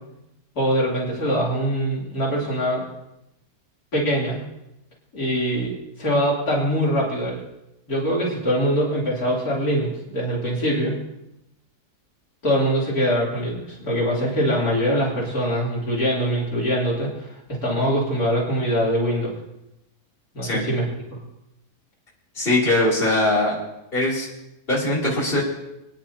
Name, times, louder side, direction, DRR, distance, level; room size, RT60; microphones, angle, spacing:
voice 1, 0.6-2.8 3.9-4.4 5.1-7.4 7.9-11.0 12.4-19.3 20.3-20.9 21.1-21.2, equal, 75° left, -5 dB, 3.9 m, -23 dB
voice 2, 22.4-23.6 23.9-24.3 24.7-25.4, left 2 dB, 35° left, -6 dB, 3.4 m, -21 dB
25.0 x 10.5 x 2.9 m, 0.89 s
omnidirectional pair, 1.6 m